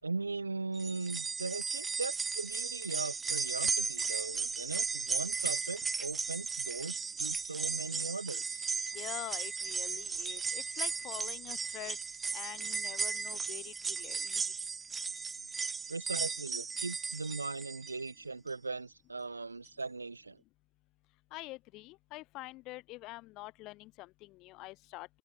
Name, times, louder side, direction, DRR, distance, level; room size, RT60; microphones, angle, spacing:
voice 1, 0.0-8.6 15.9-20.4, right 3 dB, 85° right, 7.4 m, -39 dB
sound 1, 0.8-18.1 18.5-18.6 19.7-19.8, right 5 dB, 15° right, 1.3 m, -36 dB
voice 2, 8.9-12.0 12.3-14.5 21.3-25.1, left 20 dB, 45° left, 7.3 m, -46 dB
open air
figure-of-eight pair, 85°, 0 cm